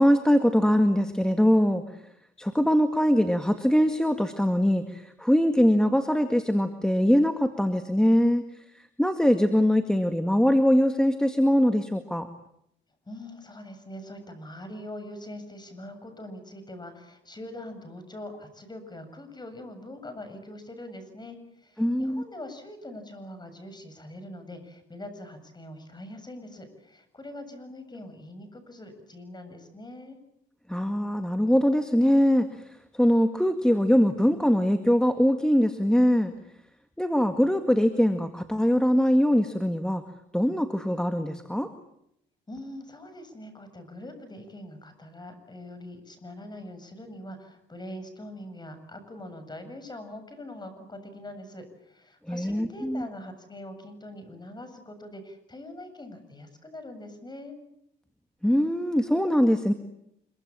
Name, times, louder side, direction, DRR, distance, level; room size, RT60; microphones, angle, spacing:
voice 1, 0.0-1.8 2.4-8.4 9.0-12.3 21.8-22.2 30.7-32.5 32.9-36.3 37.0-40.0 40.3-41.7 52.3-53.1 58.4-59.7, equal, 5° left, 7 dB, 2.0 m, -22 dB
voice 2, 13.1-30.2 42.5-57.6, left 1 dB, 20° left, 9 dB, 7.7 m, -43 dB
26.0 x 24.0 x 8.9 m, 0.76 s
cardioid pair, 90°, 20 cm